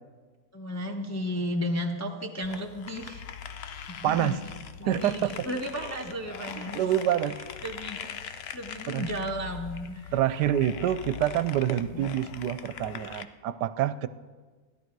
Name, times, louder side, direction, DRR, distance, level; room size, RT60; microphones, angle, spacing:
voice 1, 0.5-3.3 3.9-4.4 4.8-6.9 7.6-10.1 11.9-12.1, equal, 15° left, 1 dB, 0.7 m, -34 dB
sound 1, 2.4-13.2, left 7 dB, 75° left, 0.5 m, -41 dB
voice 2, 4.0-4.3 4.9-5.5 6.7-7.4 8.9-9.1 10.1-14.1, right 11 dB, 80° right, 14 dB, 1.2 m, -27 dB
16.5 x 11.5 x 4.7 m, 1.4 s
omnidirectional pair, 1.9 m